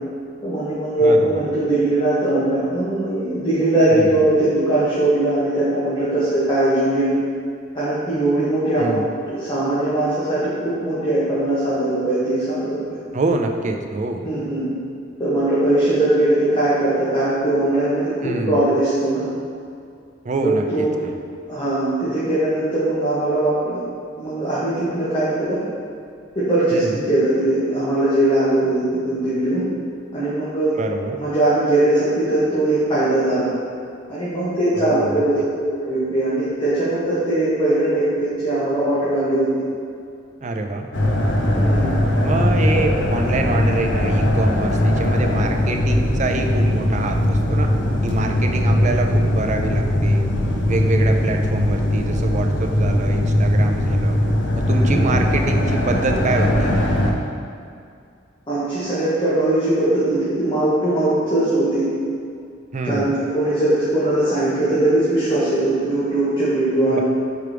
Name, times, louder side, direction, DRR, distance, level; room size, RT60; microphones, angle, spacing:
voice 1, 0.4-7.1 7.7-13.0 14.2-14.7 15.2-19.2 20.4-21.0 21.5-23.8 24.2-25.6 26.3-29.7 30.1-30.8 31.2-33.5 34.1-35.4 35.7-39.5 41.5-41.9 48.4-48.5 54.9-55.1 58.5-61.9 62.8-67.0, right 1 dB, 25° left, -12 dB, 1.5 m, -20 dB
voice 2, 1.0-1.4 3.9-4.2 8.8-9.1 13.1-14.2 18.2-18.7 20.2-21.1 26.7-27.0 30.8-31.2 34.8-35.2 40.4-40.9 42.2-47.7 48.0-50.2 50.7-54.2 54.5-56.9 62.7-63.1 66.9-67.0, right 2 dB, 40° right, 3 dB, 0.5 m, -25 dB
sound 1, 40.9-57.1, left 1 dB, 65° left, 0.7 m, -19 dB
4.8 x 4.6 x 5.0 m, 2.3 s
head